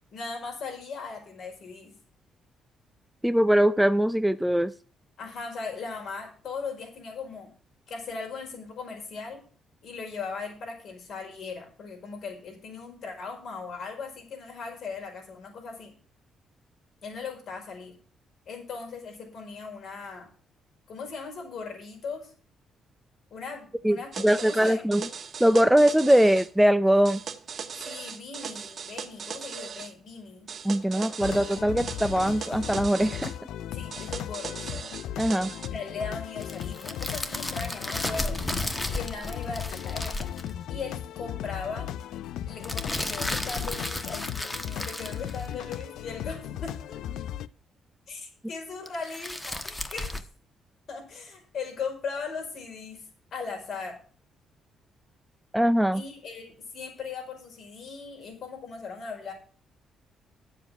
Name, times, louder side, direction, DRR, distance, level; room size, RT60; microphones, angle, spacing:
voice 1, 0.1-1.9 5.2-7.5 7.9-9.4 9.8-15.9 17.0-17.9 18.5-20.3 20.9-22.3 23.3-24.8 27.8-30.5 30.9-31.2 33.7-34.7 35.7-38.4 38.9-40.3 40.7-41.9 42.5-47.0 48.1-50.2 50.9-53.0 53.3-54.0 55.9-59.3, left 4 dB, 65° left, 2 dB, 5.0 m, -38 dB
voice 2, 3.2-4.7 23.8-25.1 25.4-27.2 30.6-33.3 35.2-35.5 55.5-56.0, equal, 5° right, 13 dB, 0.5 m, -22 dB
sound 1, 24.1-26.5 27.0-29.9 30.5-33.3 33.9-35.7, right 6 dB, 50° right, 1.3 m, -39 dB
sound 2, 31.2-47.5, left 11 dB, 85° left, 0.4 m, -37 dB
sound 3, 36.4-40.5 42.6-45.8 48.9-50.2, left 1 dB, 15° left, 1.2 m, -33 dB
9.8 x 7.5 x 6.1 m, 0.42 s
cardioid pair, 90°, 0 cm